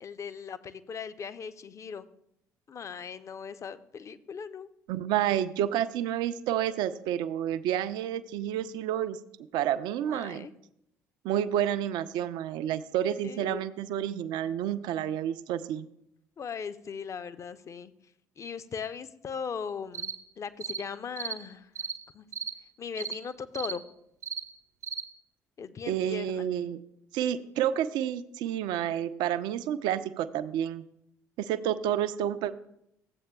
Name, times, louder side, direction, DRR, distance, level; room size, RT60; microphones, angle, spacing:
voice 1, 0.0-2.1 2.7-4.7 10.1-10.5 13.2-13.6 16.4-17.9 18.4-21.9 22.1-22.2 22.8-23.8 25.6-26.5, left 6 dB, 40° left, 13 dB, 0.5 m, -39 dB
voice 2, 4.9-9.2 9.5-10.5 11.2-15.9 25.9-26.8 27.1-30.8 31.4-32.5, right 10 dB, 60° right, 12 dB, 0.4 m, -29 dB
sound 1, 19.9-20.2 20.6-20.8 21.2-21.4 21.7-22.0 22.3-22.5 23.0-23.2 23.5-23.8 24.2-24.4 24.8-25.0, right 6 dB, 90° right, 0.7 m, -35 dB
14.0 x 7.8 x 2.2 m, 0.76 s
hypercardioid pair, 55°, 8 cm